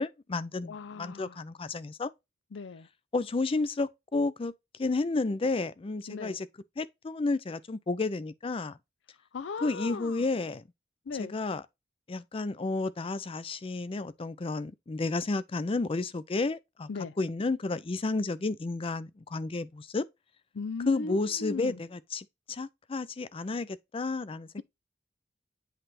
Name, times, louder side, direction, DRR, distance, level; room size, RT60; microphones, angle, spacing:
voice 1, 0.0-2.1 3.1-4.5 4.8-6.5 6.8-8.8 9.6-10.6 11.2-11.6 12.1-16.9 17.2-20.0 20.9-24.6, left 3 dB, 30° left, 0.4 m, -31 dB
voice 2, 0.6-1.4 2.5-2.9 6.1-6.4 9.3-10.3 11.1-11.3 16.9-17.2 20.5-21.8, left 4 dB, 85° left, 0.5 m, -38 dB
8.0 x 3.3 x 4.2 m
head